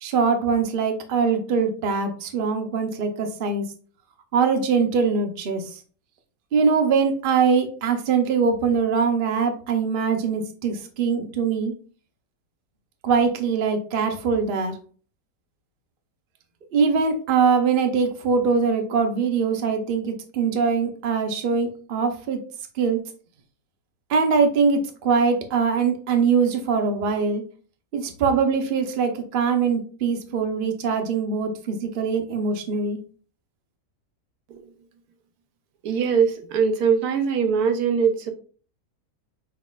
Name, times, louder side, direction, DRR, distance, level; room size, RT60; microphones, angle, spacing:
voice 1, 0.0-3.7 4.3-5.8 6.5-11.7 13.0-14.8 16.7-22.4 22.8-23.0 24.1-27.4 27.9-33.0, right 5 dB, 60° right, 4 dB, 0.6 m, -22 dB
voice 2, 35.8-38.3, right 6 dB, 75° right, 7 dB, 1.1 m, -21 dB
5.6 x 2.8 x 2.3 m, 0.40 s
omnidirectional pair, 1.7 m